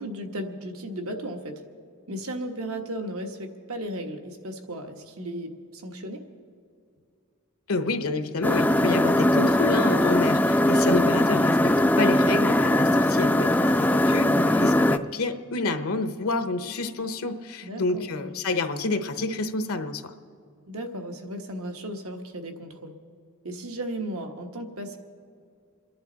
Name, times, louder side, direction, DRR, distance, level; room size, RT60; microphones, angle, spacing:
voice 1, 0.0-1.6 2.1-6.2 10.7-11.0 17.6-18.3 20.7-22.9 23.4-25.0, right 1 dB, 80° right, 4 dB, 1.3 m, -35 dB
voice 2, 7.7-20.1, left 3 dB, 80° left, 8 dB, 0.9 m, -28 dB
sound 1, 8.4-15.0, left 1 dB, 5° left, 0.3 m, -20 dB
28.0 x 11.0 x 4.0 m, 2.3 s
head